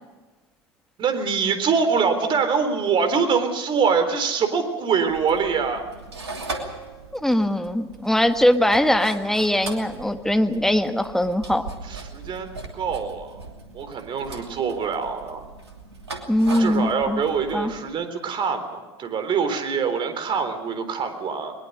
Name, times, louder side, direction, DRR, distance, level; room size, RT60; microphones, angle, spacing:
voice 1, 1.0-5.8 11.9-13.4 13.7-15.4 16.6-21.5, right 5 dB, 35° right, 9 dB, 3.8 m, -24 dB
sound 1, 5.1-17.8, right 3 dB, 85° right, 2.8 m, -39 dB
voice 2, 7.1-11.6 16.3-17.2 17.5-17.7, left 1 dB, 5° left, 8 dB, 1.7 m, -21 dB
21.5 x 21.5 x 6.7 m, 1.2 s
figure-of-eight pair, 80°, 14 cm